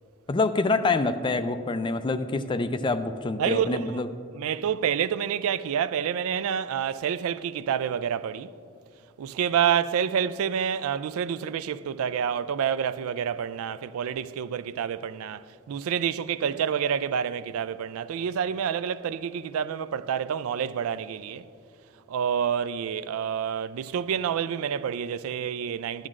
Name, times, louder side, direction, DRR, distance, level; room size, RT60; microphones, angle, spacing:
voice 1, 0.3-4.1, left 3 dB, 20° left, 0.3 m, -26 dB
voice 2, 3.4-4.0 4.3-8.5 9.2-21.5 22.1-26.1, right 8 dB, 75° right, 0.3 m, -28 dB
13.0 x 10.5 x 2.5 m
head